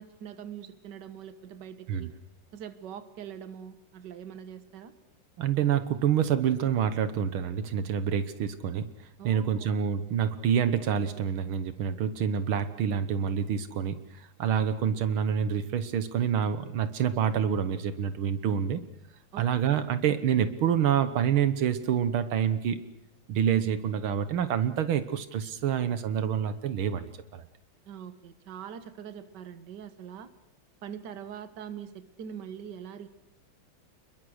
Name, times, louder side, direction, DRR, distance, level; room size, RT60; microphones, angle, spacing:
voice 1, 0.0-2.1 2.5-4.9 9.2-9.7 19.3-19.5 27.9-30.3 30.8-33.1, right 8 dB, 60° right, 12 dB, 1.8 m, -43 dB
voice 2, 5.4-8.9 9.2-18.8 19.4-22.8 23.3-27.4, right 8 dB, 80° right, 11 dB, 2.0 m, -27 dB
29.5 x 21.5 x 6.5 m, 0.84 s
omnidirectional pair, 2.3 m